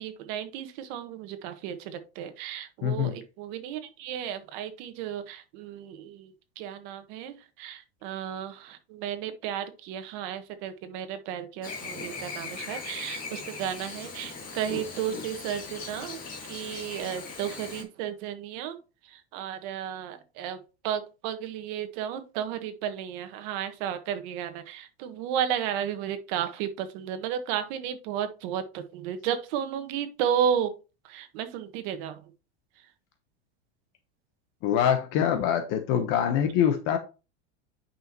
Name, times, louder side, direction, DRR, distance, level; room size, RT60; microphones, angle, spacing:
voice 1, 0.0-16.2 16.5-18.8 19.1-20.6 20.8-30.7 31.0-32.2, right 9 dB, 50° right, 1.4 m, -33 dB
voice 2, 2.8-3.2 34.6-37.0, left 9 dB, 45° left, 1.0 m, -24 dB
Chirp tweet / Buzz, 11.6-17.8, left 4 dB, 25° left, 2.2 m, -39 dB
9.4 x 5.7 x 2.9 m
supercardioid pair, 165°, 32 cm